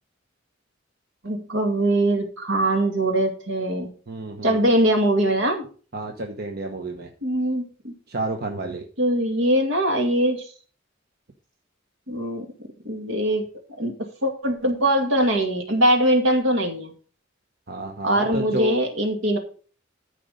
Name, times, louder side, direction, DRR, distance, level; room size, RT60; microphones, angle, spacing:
voice 1, 1.2-3.9 4.4-5.7 7.2-7.9 9.0-10.5 12.1-12.5 12.8-13.4 13.8-13.9 14.2-16.9 18.0-19.4, right 1 dB, 70° right, 3 dB, 2.3 m, -22 dB
voice 2, 4.1-4.8 5.9-7.1 8.1-8.9 17.7-18.8, right 3 dB, 50° right, 3 dB, 1.1 m, -30 dB
13.5 x 5.1 x 5.1 m, 0.40 s
head